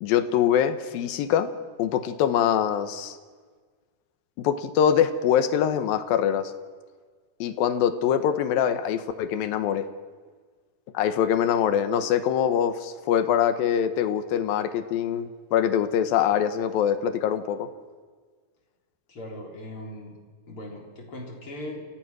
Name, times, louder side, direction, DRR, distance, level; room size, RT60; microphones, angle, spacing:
voice 1, 0.0-1.5 1.8-3.2 4.4-6.5 7.4-9.9 10.9-17.7, left 9 dB, 70° left, 10 dB, 2.5 m, -24 dB
voice 2, 19.1-20.1 20.5-21.8, left 1 dB, 30° left, 0 dB, 4.3 m, -39 dB
28.5 x 16.5 x 6.3 m, 1.5 s
omnidirectional pair, 4.9 m